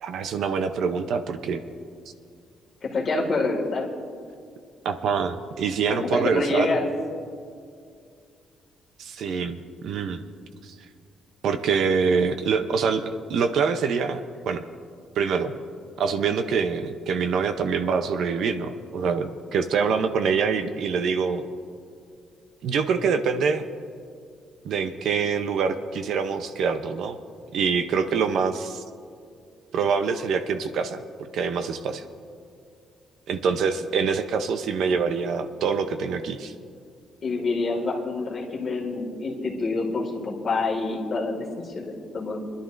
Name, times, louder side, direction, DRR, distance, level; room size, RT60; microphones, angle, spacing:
voice 1, 0.0-1.6 4.8-6.8 9.0-10.2 10.6-10.7 11.4-14.2 14.5-14.6 15.2-15.5 16.0-21.4 22.6-23.7 24.6-27.2 27.5-28.8 29.7-31.0 31.3-32.0 33.3-36.5, right 5 dB, 65° right, 9 dB, 0.6 m, -25 dB
voice 2, 2.8-3.9 5.9-6.9 37.2-42.5, left 3 dB, 35° left, -1 dB, 2.0 m, -27 dB
25.0 x 11.0 x 2.6 m, 2.3 s
cardioid pair, 155°, 0 cm